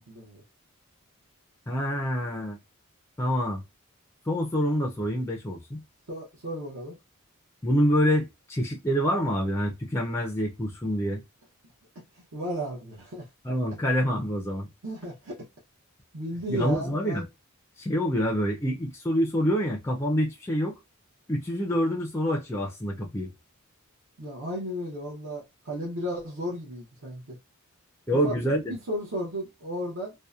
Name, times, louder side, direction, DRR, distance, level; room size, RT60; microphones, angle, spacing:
voice 1, 0.1-0.4 6.1-7.0 12.3-13.3 14.8-15.4 16.1-17.3 24.2-27.4 28.1-28.3 28.7-30.1, equal, 65° right, 0.7 m, -34 dB
voice 2, 1.7-2.6 3.2-3.6 4.3-5.8 7.6-11.2 13.4-14.7 16.5-17.2 17.8-20.8 21.3-23.3 28.1-28.7, equal, 10° left, 0.3 m, -26 dB
2.7 x 2.0 x 2.3 m
head